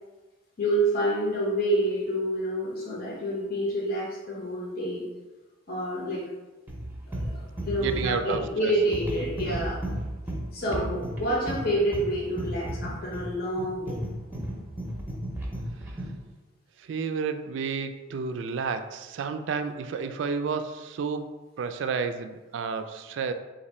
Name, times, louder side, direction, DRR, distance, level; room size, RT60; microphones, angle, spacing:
voice 1, 0.6-5.1 5.7-6.2 7.1-9.8 10.5-14.0, right 1 dB, 50° left, -4 dB, 0.8 m, -28 dB
sound 1, 6.7-16.2, right 1 dB, 10° right, 0.6 m, -34 dB
voice 2, 7.8-8.7 10.7-11.0 16.8-23.3, right 5 dB, 65° right, 9 dB, 0.3 m, -31 dB
4.0 x 2.6 x 4.2 m, 1.2 s
head